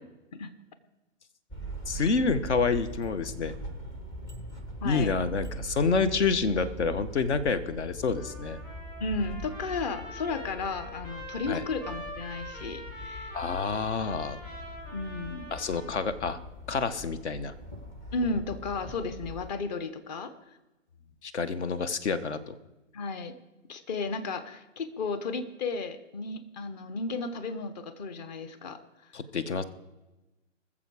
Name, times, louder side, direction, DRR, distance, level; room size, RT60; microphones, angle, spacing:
sound 1, 1.5-19.5, equal, 10° left, 0.5 m, -42 dB
voice 1, 1.9-3.5 4.8-8.6 11.5-11.6 13.3-14.4 15.5-16.4 16.7-17.5 21.2-22.5 29.1-29.6, left 4 dB, 60° left, 14 dB, 1.1 m, -28 dB
voice 2, 4.8-5.1 6.0-6.2 9.0-13.3 14.9-15.5 18.1-20.3 22.9-23.3 23.7-28.8, left 3 dB, 35° left, 12 dB, 1.0 m, -34 dB
Trumpet, 8.1-16.2, equal, 85° left, 4.1 m, -45 dB
20.5 x 7.2 x 4.8 m, 1.1 s
figure-of-eight pair, 130°, 38 cm